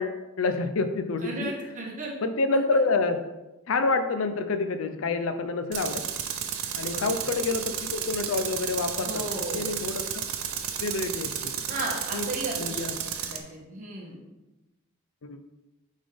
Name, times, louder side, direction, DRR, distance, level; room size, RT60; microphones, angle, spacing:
voice 1, 0.0-1.5 2.2-3.2 3.7-6.0 6.7-10.0 10.8-11.6 12.1-12.3 12.6-12.9 15.2-15.4, left 3 dB, 75° left, 9 dB, 0.5 m, -28 dB
voice 2, 1.2-2.1 2.7-2.8 6.8-7.3 9.0-9.7 11.7-12.9 13.2-14.2, right 1 dB, 40° right, -2 dB, 1.4 m, -35 dB
Tools, 5.7-13.4, right 9 dB, 90° right, 0.6 m, -32 dB
8.6 x 3.7 x 3.4 m, 1.0 s
head